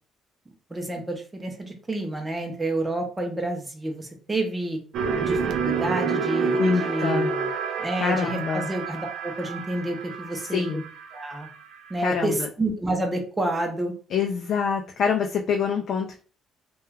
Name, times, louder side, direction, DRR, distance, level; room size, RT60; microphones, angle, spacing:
voice 1, 0.7-4.8 5.2-7.5 7.8-10.9 11.1-11.5 11.9-13.9, right 1 dB, 15° right, 2 dB, 0.5 m, -29 dB
sound 1, 4.9-11.9, right 5 dB, 70° right, 0.3 m, -28 dB
voice 2, 6.6-7.3 8.0-8.7 10.5-10.8 12.0-12.5 14.1-16.2, left 6 dB, 60° left, 2 dB, 0.3 m, -25 dB
2.2 x 2.2 x 3.2 m, 0.40 s
cardioid pair, 115°, 0 cm